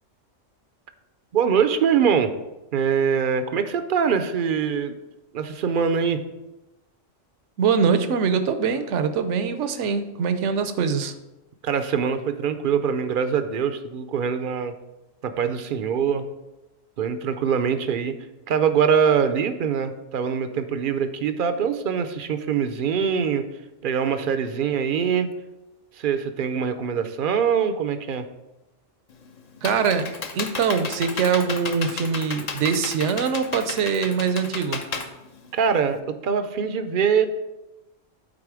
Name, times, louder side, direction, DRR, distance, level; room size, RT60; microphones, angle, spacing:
voice 1, 1.3-2.3 2.7-5.0 5.3-6.2 11.6-14.7 15.2-16.3 17.0-18.2 18.5-23.5 23.8-25.3 25.9-28.3 35.5-37.3, right 7 dB, 55° right, 10 dB, 0.6 m, -23 dB
voice 2, 7.6-11.1 29.6-34.8, right 6 dB, 70° right, 10 dB, 1.0 m, -23 dB
Computer keyboard, 29.1-36.0, left 4 dB, 45° left, 0.6 m, -33 dB
8.7 x 4.2 x 4.8 m, 1.0 s
omnidirectional pair, 1.3 m